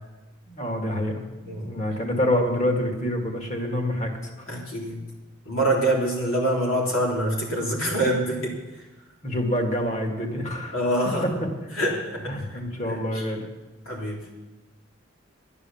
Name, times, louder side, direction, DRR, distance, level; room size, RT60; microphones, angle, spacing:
voice 1, 0.5-4.1 9.2-10.7 11.2-11.3 12.3-13.4, left 1 dB, 35° left, 2 dB, 2.1 m, -26 dB
voice 2, 4.5-5.0 5.5-8.5 10.7-11.3 11.7-13.2 13.9-14.2, right 1 dB, 85° left, -2 dB, 3.6 m, -25 dB
11.5 x 9.9 x 7.2 m, 1.1 s
head